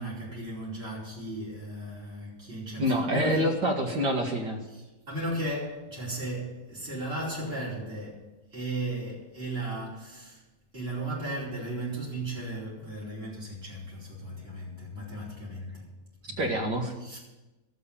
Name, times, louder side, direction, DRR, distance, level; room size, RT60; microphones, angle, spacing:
voice 1, 0.0-3.5 4.7-8.2 8.5-10.4 10.7-15.8 16.3-16.5 17.0-17.2, right 1 dB, 35° right, 5.2 m, -35 dB
voice 2, 2.8-4.6 16.4-16.9, equal, 85° right, 2.4 m, -27 dB
13.5 x 7.7 x 8.8 m
omnidirectional pair, 1.8 m